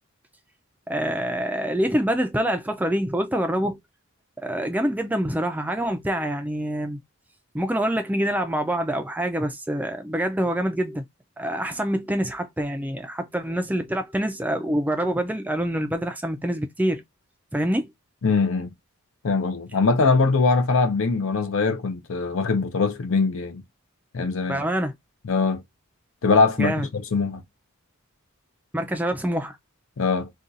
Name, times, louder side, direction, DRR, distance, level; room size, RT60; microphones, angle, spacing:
voice 1, 0.9-3.8 4.4-7.0 7.5-11.0 11.4-17.0 17.5-17.9 24.5-24.9 26.6-26.9 28.7-29.6, right 1 dB, 5° right, 0.4 m, -26 dB
voice 2, 18.2-18.7 19.2-23.6 24.1-24.6 25.2-25.6 26.2-27.4 30.0-30.3, left 4 dB, 65° left, 0.6 m, -22 dB
2.6 x 2.3 x 3.9 m
head